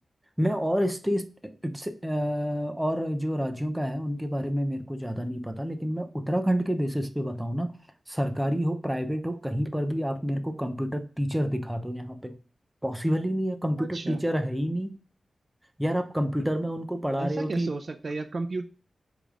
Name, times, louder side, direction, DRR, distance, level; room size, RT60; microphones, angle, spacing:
voice 1, 0.4-7.7 8.1-12.3 12.8-14.9 15.8-17.7, equal, 10° right, 8 dB, 0.7 m, -28 dB
voice 2, 13.8-14.2 17.2-18.7, right 3 dB, 50° right, 9 dB, 0.5 m, -33 dB
7.6 x 3.4 x 3.7 m, 0.38 s
wide cardioid pair, 95°, 0 cm